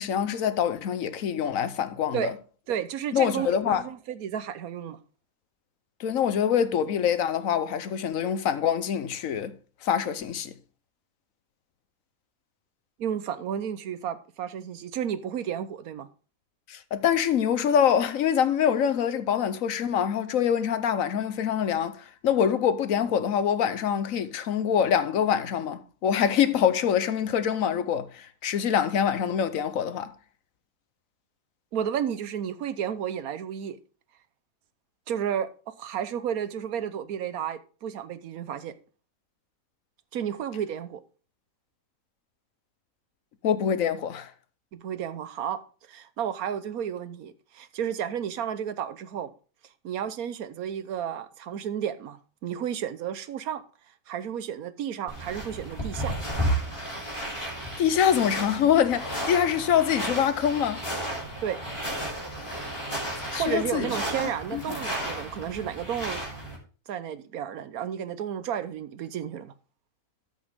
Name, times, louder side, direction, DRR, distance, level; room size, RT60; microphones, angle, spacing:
voice 1, 0.0-2.3 3.1-3.8 6.0-9.5 9.8-10.5 16.7-30.1 43.4-44.3 57.8-60.8 63.3-63.9 64.5-64.6, left 8 dB, 70° left, 1.2 m, -25 dB
voice 2, 2.7-5.0 13.0-16.1 31.7-33.8 35.1-38.7 40.1-41.0 44.7-45.6 45.9-49.3 49.8-53.6 54.1-56.1 61.4-61.6 63.3-66.2 66.9-69.5, right 9 dB, 85° right, 1.3 m, -32 dB
sound 1, 55.1-66.6, right 1 dB, 20° left, 3.4 m, -33 dB
13.5 x 6.2 x 3.5 m
omnidirectional pair, 1.5 m